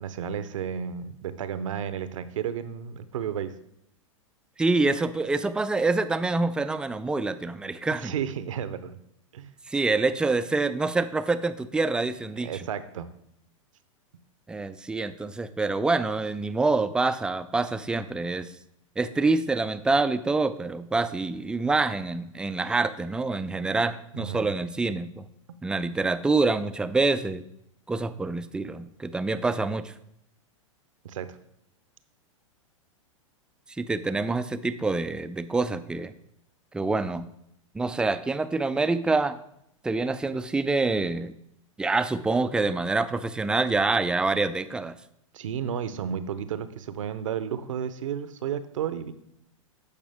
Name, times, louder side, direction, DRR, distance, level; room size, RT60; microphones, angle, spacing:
voice 1, 0.0-3.5 8.0-8.9 9.3-9.5 12.4-13.1 24.1-24.5 31.0-31.3 45.3-49.1, right 8 dB, 70° right, 13 dB, 0.7 m, -32 dB
voice 2, 4.6-8.1 9.7-12.7 14.5-18.5 19.0-25.2 25.6-27.4 27.9-29.9 33.8-36.1 36.7-37.3 37.7-39.4 39.8-41.3 41.8-44.9, right 3 dB, 5° right, 12 dB, 0.3 m, -26 dB
13.5 x 5.1 x 3.5 m, 0.76 s
hypercardioid pair, 105°, 17 cm